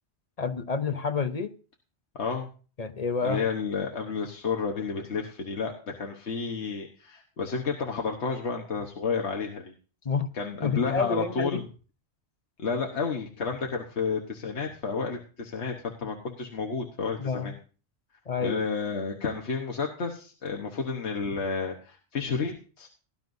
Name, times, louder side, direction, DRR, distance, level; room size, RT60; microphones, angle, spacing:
voice 1, 0.4-1.5 2.8-3.4 10.0-10.3 10.6-11.6 17.2-17.5 18.3-18.6, left 5 dB, 40° left, 9 dB, 0.9 m, -29 dB
voice 2, 2.1-2.5 3.2-9.7 10.3-11.6 12.6-17.5 18.4-22.9, left 5 dB, 75° left, 1 dB, 1.5 m, -31 dB
18.0 x 11.0 x 2.6 m, 0.37 s
omnidirectional pair, 1.1 m